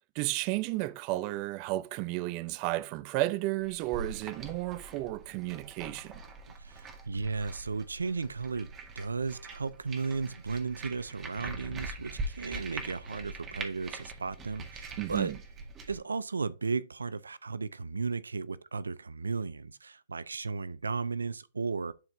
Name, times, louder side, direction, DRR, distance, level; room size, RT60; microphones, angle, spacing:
voice 1, 0.1-6.2 15.0-15.4, right 18 dB, 40° right, 0.5 m, -33 dB
sound 1, 3.6-16.0, right 3 dB, 25° right, 1.7 m, -43 dB
voice 2, 6.6-8.7 9.0-15.3 15.9-21.9, right 4 dB, 90° right, 0.5 m, -35 dB
11.0 x 4.5 x 2.7 m
hypercardioid pair, 125°, 0 cm